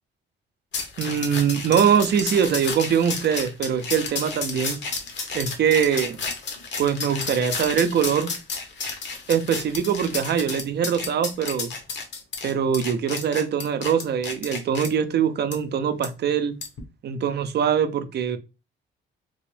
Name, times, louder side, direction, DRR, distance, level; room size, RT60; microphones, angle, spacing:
sound 1, 0.7-14.9 15.5-15.6 16.0-16.1 16.6-16.8, left 4 dB, 65° left, 1.1 m, -32 dB
voice 1, 1.0-4.8 5.3-6.2 6.8-8.3 9.3-11.7 12.4-16.5 17.0-18.4, right 8 dB, 55° right, 0.6 m, -23 dB
3.7 x 2.5 x 3.3 m
cardioid pair, 90°, 20 cm